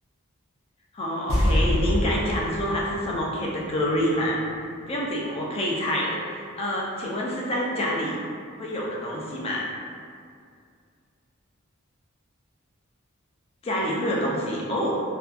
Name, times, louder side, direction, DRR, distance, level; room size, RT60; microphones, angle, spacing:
voice 1, 0.9-4.4 4.9-8.2 8.6-9.6 13.6-14.9, equal, 30° left, -4 dB, 0.3 m, -27 dB
sound 1, 1.3-4.5 4.8-4.9, equal, 85° right, 0.6 m, -26 dB
2.5 x 2.2 x 2.3 m, 2.3 s
head